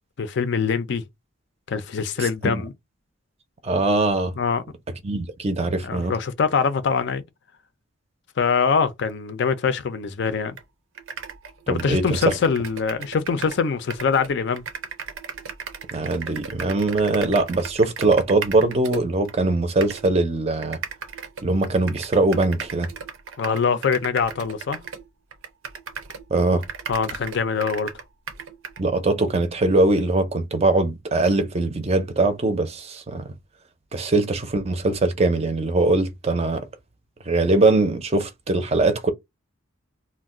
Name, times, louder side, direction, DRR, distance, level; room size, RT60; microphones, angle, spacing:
voice 1, 0.2-1.0 1.7-2.7 4.4-4.6 5.8-7.2 8.4-10.6 11.7-14.7 23.4-24.8 26.9-27.9, left 5 dB, 55° left, 0.4 m, -23 dB
voice 2, 2.2-2.6 3.6-4.3 5.0-6.1 11.7-12.3 15.9-20.8 21.4-22.9 26.3-26.7 28.8-33.3 33.9-36.7 37.3-39.1, right 2 dB, 30° right, 0.5 m, -21 dB
sound 1, 10.6-10.7 10.9-13.6 13.9-19.4 19.8-20.1 20.6-26.3 26.6-28.8, right 6 dB, 75° right, 0.6 m, -36 dB
2.3 x 2.1 x 3.6 m
head